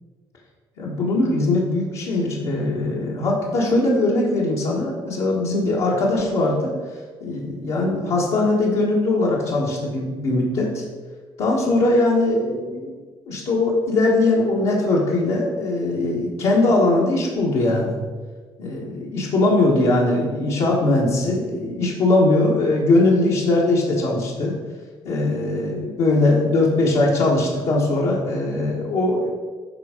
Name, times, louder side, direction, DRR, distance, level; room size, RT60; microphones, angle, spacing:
voice 1, 0.8-6.7 7.2-10.8 11.4-12.9 13.3-18.0 18.6-24.6 25.0-29.3, left 2 dB, 80° left, -4 dB, 1.5 m, -20 dB
10.5 x 3.6 x 5.1 m, 1.5 s
cardioid pair, 85°, 10 cm